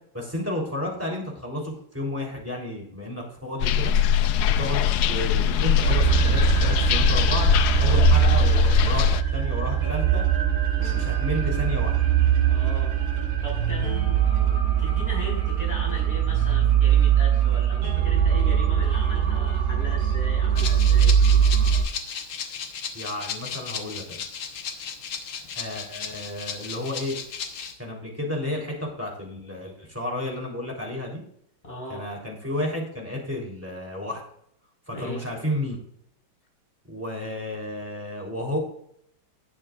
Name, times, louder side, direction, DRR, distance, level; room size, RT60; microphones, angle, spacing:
voice 1, 0.1-3.9 4.5-10.2 10.8-12.0 22.9-24.2 25.5-27.2 27.8-31.2 31.9-34.2 34.9-35.8 36.9-38.6, left 1 dB, 5° right, -1 dB, 3.4 m, -32 dB
sound 1, 3.6-9.2, left 9 dB, 80° left, 0.9 m, -21 dB
sound 2, 5.8-21.8, right 9 dB, 75° right, 3.1 m, -22 dB
voice 2, 12.5-12.9 13.4-21.1 31.6-32.1 34.9-35.2, equal, 15° left, -3 dB, 5.3 m, -38 dB
Rattle (instrument), 20.6-27.7, left 6 dB, 65° left, 1.8 m, -35 dB
19.5 x 7.3 x 2.5 m, 0.68 s
omnidirectional pair, 2.3 m